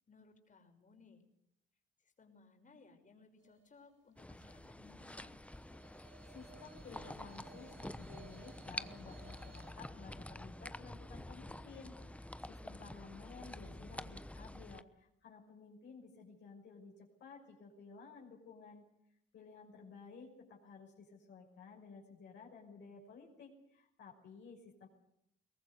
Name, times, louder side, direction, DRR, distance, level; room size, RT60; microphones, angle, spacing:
voice 1, 0.1-1.2 2.0-5.4 13.4-13.9, left 4 dB, 40° left, 5 dB, 5.9 m, -63 dB
sound 1, 3.4-4.6 5.2-9.7, right 7 dB, 70° right, 6.1 m, -61 dB
sound 2, 4.2-14.8, left 1 dB, 5° left, 1.0 m, -48 dB
voice 2, 6.0-16.9 17.2-18.8 19.3-24.9, left 5 dB, 65° left, -1 dB, 6.1 m, -55 dB
22.5 x 19.0 x 8.3 m, 0.75 s
cardioid pair, 90°, 20 cm